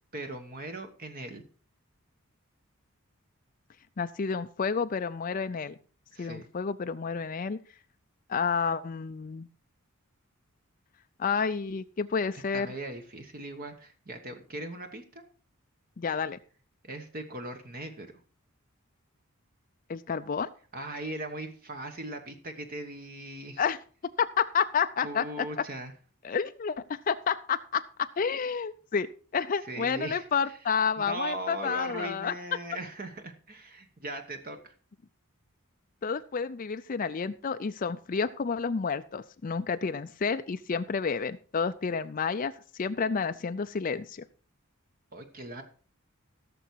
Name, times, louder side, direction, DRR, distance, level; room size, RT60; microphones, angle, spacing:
voice 1, 0.1-1.4 6.1-6.5 12.5-15.2 16.8-18.1 20.7-23.6 25.0-25.9 29.7-30.5 31.0-34.7 45.1-45.6, right 2 dB, 40° right, 6 dB, 1.1 m, -39 dB
voice 2, 4.0-5.7 6.2-7.6 8.3-9.5 11.2-12.7 16.0-16.4 19.9-20.5 23.6-23.8 24.2-25.5 26.2-32.3 36.0-44.2, left 6 dB, 40° left, 10 dB, 0.4 m, -30 dB
16.5 x 6.9 x 4.6 m, 0.41 s
head